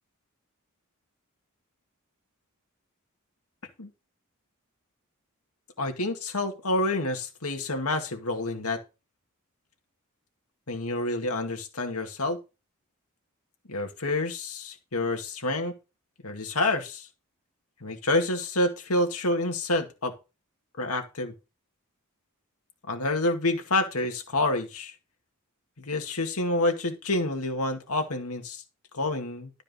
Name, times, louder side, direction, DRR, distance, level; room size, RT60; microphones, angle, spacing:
voice 1, 5.8-8.8 10.7-12.4 13.7-15.8 16.2-17.1 17.8-20.1 20.8-21.3 22.9-24.9 25.8-28.6 28.9-29.5, left 2 dB, 90° left, 4 dB, 2.1 m, -28 dB
12.5 x 5.2 x 5.4 m, 0.29 s
head